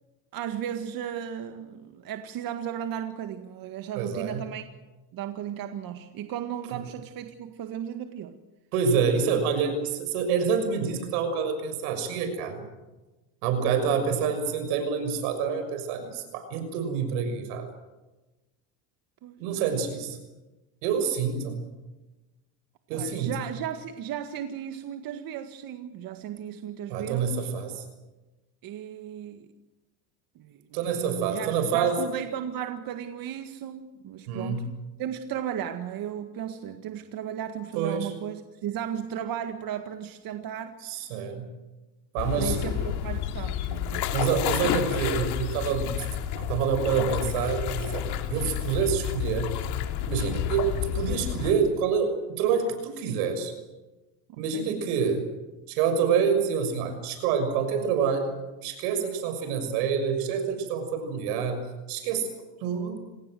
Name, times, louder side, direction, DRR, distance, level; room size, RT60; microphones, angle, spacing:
voice 1, 0.3-4.7 5.1-8.4 19.2-19.3 22.9-27.5 28.6-29.5 30.4-34.6 35.0-40.8 42.3-44.1 53.0-53.2 54.3-54.7, right 9 dB, 50° right, 7 dB, 1.9 m, -35 dB
voice 2, 3.9-4.4 8.7-12.6 13.4-17.7 19.4-20.2 20.8-21.6 22.9-23.3 26.9-27.8 30.7-32.0 34.3-34.7 37.7-38.1 40.8-41.5 42.1-42.7 44.1-45.9 46.3-49.5 50.1-50.7 50.9-53.5 54.4-55.2 55.7-58.3 58.6-62.3 62.6-63.0, right 6 dB, 80° right, 8 dB, 6.5 m, -27 dB
sound 1, 42.2-51.5, left 10 dB, 60° left, 2.9 m, -30 dB
27.5 x 19.0 x 7.8 m, 1.1 s
supercardioid pair, 115°, 43 cm